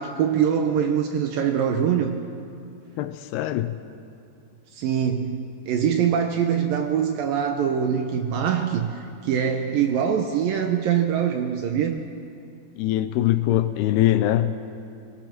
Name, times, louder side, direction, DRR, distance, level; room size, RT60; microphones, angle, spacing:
voice 1, 0.0-2.2 4.7-5.4 5.7-12.0, right 8 dB, 75° right, 5 dB, 2.2 m, -23 dB
voice 2, 3.0-3.8 12.8-14.6, left 13 dB, 80° left, 12 dB, 2.5 m, -22 dB
23.0 x 19.0 x 6.0 m, 2.4 s
omnidirectional pair, 4.8 m